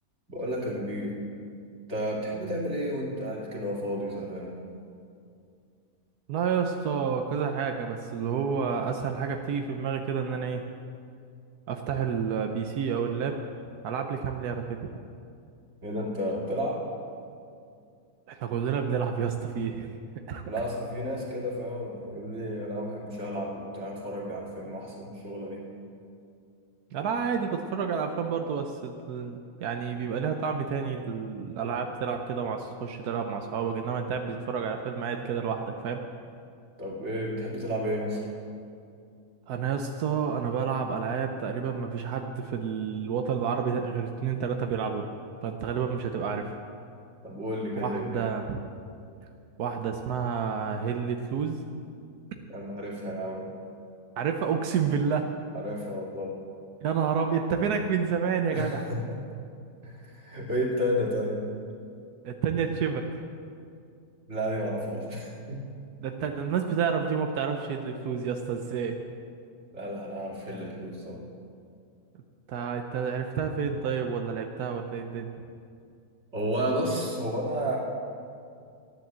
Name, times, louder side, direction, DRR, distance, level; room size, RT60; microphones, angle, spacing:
voice 1, 0.3-1.2 1.9-4.6 15.8-16.8 20.4-25.6 36.8-38.3 47.2-48.3 52.5-53.5 55.5-56.4 58.5-59.2 59.8-61.4 64.3-65.6 69.7-71.2 76.3-77.8, equal, 45° right, -3 dB, 2.9 m, -32 dB
voice 2, 6.3-10.7 11.7-13.4 13.8-14.9 18.3-20.0 20.3-20.4 26.9-36.0 39.5-45.0 45.4-46.5 47.8-48.6 49.6-51.6 52.3-52.4 54.2-55.3 56.8-58.8 62.2-63.1 66.0-69.0 72.5-75.3, right 6 dB, 90° right, 4 dB, 1.3 m, -29 dB
13.5 x 10.5 x 7.5 m, 2.4 s
omnidirectional pair, 1.6 m